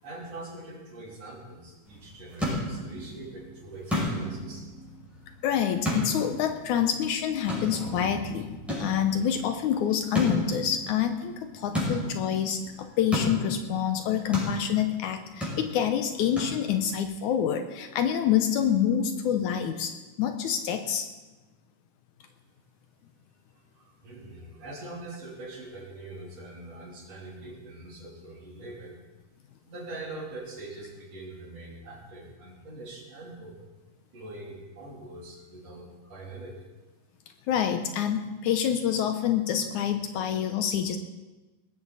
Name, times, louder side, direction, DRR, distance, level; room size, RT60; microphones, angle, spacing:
voice 1, 0.0-4.6 23.5-29.0 29.6-33.7 34.1-36.7, right 2 dB, 50° right, -2 dB, 4.0 m, -43 dB
sound 1, 1.9-17.0, equal, ahead, 6.5 m, -34 dB
voice 2, 5.4-19.9 20.2-21.1 37.5-41.0, left 9 dB, 75° left, 7 dB, 2.1 m, -27 dB
19.0 x 14.5 x 4.1 m, 1.2 s
omnidirectional pair, 3.8 m